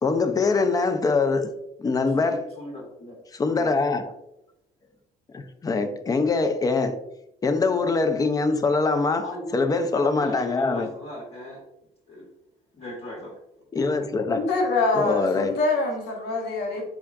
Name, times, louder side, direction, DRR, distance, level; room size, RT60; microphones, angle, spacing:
voice 1, 0.0-1.5 1.8-2.4 3.3-4.1 5.3-7.0 7.4-9.3 9.5-10.9 13.7-14.4 14.9-15.6, left 3 dB, 20° left, 0.4 m, -23 dB
voice 2, 2.2-3.2 3.5-4.0 9.2-11.6 12.1-12.3 12.7-13.3, equal, 40° left, 0.8 m, -38 dB
voice 3, 14.3-16.9, left 3 dB, 75° left, 0.9 m, -25 dB
3.5 x 3.5 x 2.3 m
cardioid pair, 110°, 17 cm